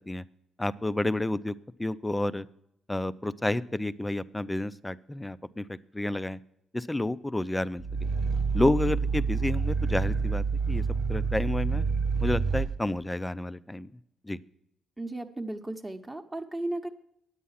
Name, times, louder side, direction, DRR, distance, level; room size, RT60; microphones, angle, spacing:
voice 1, 0.6-2.5 2.9-6.4 6.7-8.1 8.5-10.8 11.1-11.8 12.2-13.9 14.2-14.4, left 1 dB, 10° left, 15 dB, 0.4 m, -30 dB
Growling, 7.8-12.7, right 5 dB, 75° right, 0.9 m, -28 dB
voice 2, 15.0-16.9, right 1 dB, 15° right, 3 dB, 0.9 m, -35 dB
9.5 x 8.4 x 5.6 m, 0.78 s
cardioid pair, 90°, 0 cm